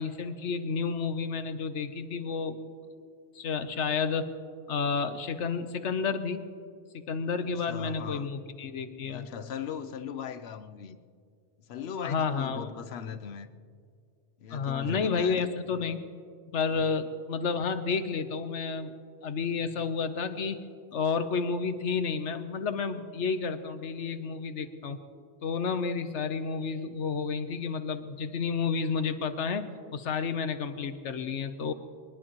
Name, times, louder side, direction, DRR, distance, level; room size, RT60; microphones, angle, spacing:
voice 1, 0.0-2.6 3.3-4.3 4.7-6.4 6.9-9.3 12.0-12.7 14.5-16.0 16.5-18.9 19.2-20.6 20.9-25.0 25.4-29.7 29.9-31.7, left 5 dB, 80° left, 9 dB, 1.2 m, -31 dB
voice 2, 7.4-8.3 9.1-11.0 11.7-13.5 14.4-15.4 16.7-16.8, left 8 dB, 65° left, 11 dB, 0.9 m, -39 dB
23.5 x 20.0 x 3.0 m, 2.2 s
omnidirectional pair, 1.2 m